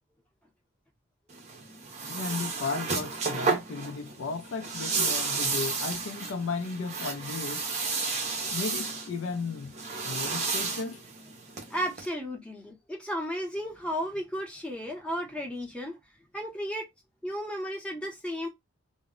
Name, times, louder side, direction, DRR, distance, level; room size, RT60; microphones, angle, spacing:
sound 1, 1.3-12.1, right 4 dB, 30° right, 0.5 m, -32 dB
voice 1, 2.1-7.7 8.5-9.8 10.0-11.0, left 4 dB, 65° left, 0.4 m, -35 dB
voice 2, 11.7-16.0 16.3-16.9 17.2-18.5, equal, 5° left, 0.6 m, -34 dB
2.1 x 2.0 x 3.5 m
head